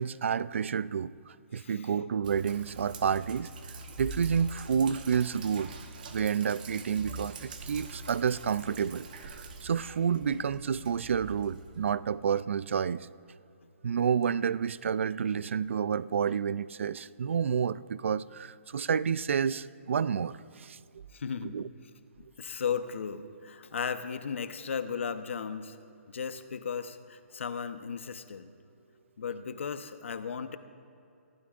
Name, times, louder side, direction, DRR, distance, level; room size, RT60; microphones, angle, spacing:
voice 1, 0.0-5.7 6.1-13.1 13.8-20.8 21.4-21.6, right 7 dB, 60° right, 0.4 m, -30 dB
voice 2, 1.5-1.9 21.1-21.6 22.2-25.8 26.1-28.5 29.2-30.6, left 6 dB, 60° left, 0.9 m, -36 dB
Sink (filling or washing), 2.2-11.9, right 3 dB, 40° right, 1.1 m, -44 dB
25.5 x 15.5 x 2.5 m
hypercardioid pair, 170°, 7 cm